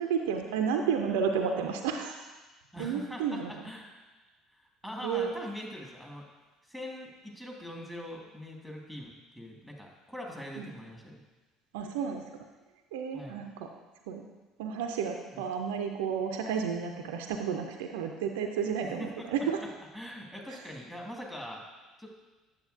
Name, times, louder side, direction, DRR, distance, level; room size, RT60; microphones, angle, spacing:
voice 1, 0.0-2.2 2.8-3.5 5.0-5.4 10.6-10.7 11.7-12.2 12.9-13.7 14.1-14.2 14.6-19.6 20.5-20.6, right 6 dB, 65° right, 4 dB, 0.5 m, -31 dB
voice 2, 2.7-3.4 3.6-3.9 4.5-6.3 6.6-11.2 13.1-13.4 15.3-15.4 18.8-19.3 19.9-21.6 22.0-22.1, equal, 5° left, -1 dB, 1.7 m, -42 dB
9.0 x 7.1 x 2.6 m, 1.2 s
figure-of-eight pair, 55°, 0 cm